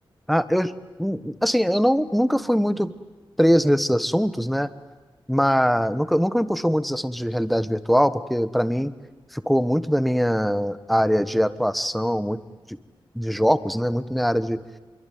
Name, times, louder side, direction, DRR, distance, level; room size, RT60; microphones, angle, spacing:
voice 1, 0.3-0.7 1.0-2.9 3.4-4.7 5.3-8.9 9.3-12.4 12.7-12.8 13.1-14.6, equal, ahead, 13 dB, 1.2 m, -22 dB
26.5 x 23.5 x 9.4 m, 1.3 s
wide cardioid pair, 125°, 9 cm